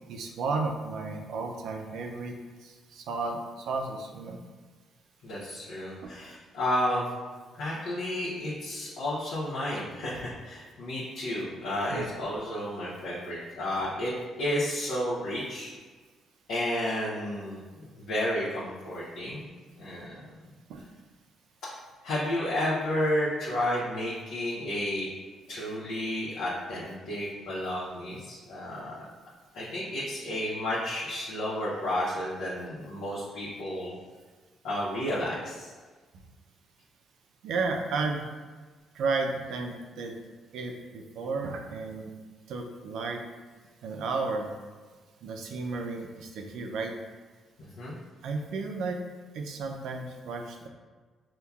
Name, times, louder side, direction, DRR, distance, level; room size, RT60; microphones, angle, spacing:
voice 1, 0.1-2.4 2.6-4.4 11.9-12.0 20.7-20.8 37.4-38.3 38.9-40.1 40.5-42.1 42.5-43.2 43.8-44.5 45.2-46.9 48.2-49.0 49.3-50.7, right 3 dB, 80° right, 3 dB, 0.4 m, -33 dB
voice 2, 5.2-7.1 7.6-14.1 14.4-15.7 16.5-19.5 19.8-20.2 21.6-21.7 22.0-25.1 25.5-28.9 29.5-33.9 34.6-35.7 47.6-47.9, left 1 dB, 85° left, -8 dB, 0.8 m, -32 dB
5.4 x 2.2 x 2.3 m, 1.4 s
cardioid pair, 90°, 0 cm